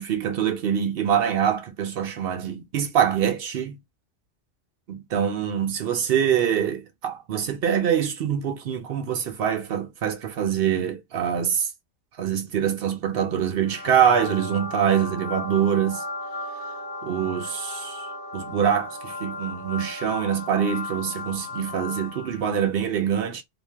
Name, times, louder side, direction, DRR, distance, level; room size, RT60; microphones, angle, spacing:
voice 1, 0.0-3.8 4.9-11.7 12.2-16.0 17.0-18.1 18.3-23.4, right 8 dB, 60° right, 0.7 m, -24 dB
sound 1, 13.6-22.5, left 2 dB, 10° left, 1.1 m, -35 dB
2.5 x 2.2 x 3.2 m
omnidirectional pair, 1.2 m